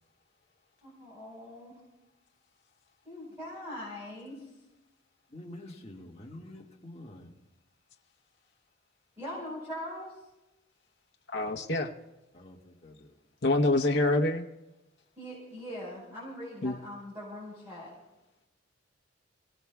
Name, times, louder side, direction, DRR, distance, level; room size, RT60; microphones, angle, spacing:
voice 1, 0.8-1.7 3.0-4.5 9.2-10.1 15.2-17.9, left 1 dB, 15° right, -6 dB, 4.8 m, -41 dB
voice 2, 5.3-7.3 12.3-13.1, left 1 dB, 30° left, -1 dB, 1.9 m, -47 dB
voice 3, 11.3-11.9 13.4-14.4 16.6-16.8, left 2 dB, 60° left, 2 dB, 0.9 m, -26 dB
28.5 x 17.5 x 2.3 m, 0.96 s
head